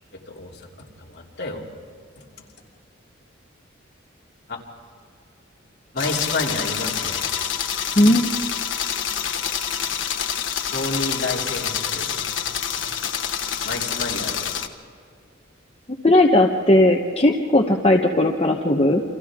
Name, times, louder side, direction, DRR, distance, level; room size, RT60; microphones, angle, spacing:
voice 1, 0.1-1.6 2.2-2.3 4.5-4.6 5.9-7.3 10.7-12.4 12.7-12.9 13.6-14.5, left 2 dB, 55° left, -2 dB, 3.1 m, -30 dB
sound 1, 6.0-14.7, left 8 dB, 75° left, 1.3 m, -27 dB
voice 2, 8.0-8.3 16.0-19.0, left 1 dB, 30° left, 0 dB, 1.0 m, -17 dB
29.5 x 26.0 x 3.7 m, 2.4 s
head